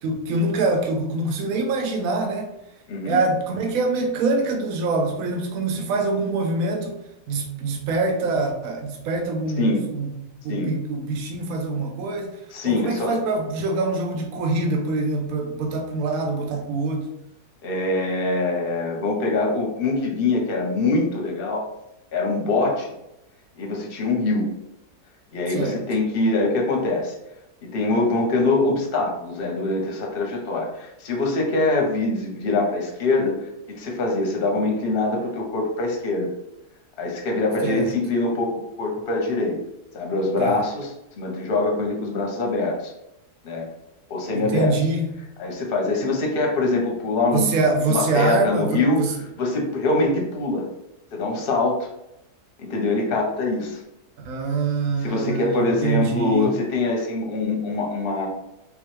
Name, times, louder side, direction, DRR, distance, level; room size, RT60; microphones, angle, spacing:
voice 1, 0.0-2.5 3.0-7.0 7.3-10.1 10.4-12.3 12.6-17.1 25.5-25.8 37.6-37.9 40.4-40.6 44.3-45.0 47.3-49.1 54.2-56.5, right 3 dB, 65° right, 3 dB, 1.0 m, -24 dB
voice 2, 2.9-3.2 9.6-9.8 10.5-10.7 12.5-13.1 17.6-21.7 22.1-22.9 23.6-24.5 25.3-27.1 27.6-36.3 37.0-39.6 39.9-40.9 41.2-42.9 43.4-43.7 44.1-44.7 45.4-47.6 47.9-49.0 49.4-50.7 51.1-51.9 52.6-53.8 55.0-58.3, left 2 dB, 45° left, 0 dB, 0.8 m, -23 dB
3.5 x 3.1 x 3.1 m, 0.86 s
omnidirectional pair, 1.7 m